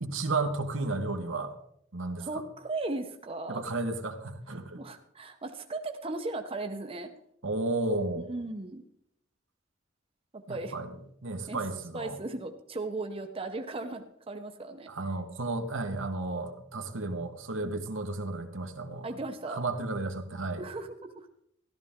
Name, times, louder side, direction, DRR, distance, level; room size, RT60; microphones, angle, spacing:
voice 1, 0.0-1.5 1.9-2.3 3.5-4.8 7.4-8.3 10.5-10.9 11.2-12.2 14.9-19.1 19.5-20.6, right 2 dB, 80° right, 6 dB, 1.3 m, -33 dB
voice 2, 2.2-3.6 4.7-7.1 8.2-8.8 10.3-10.7 11.5-11.6 11.9-14.9 17.6-17.8 19.0-19.6 20.6-21.3, right 2 dB, 30° right, 5 dB, 0.8 m, -37 dB
14.0 x 12.5 x 3.6 m, 0.71 s
head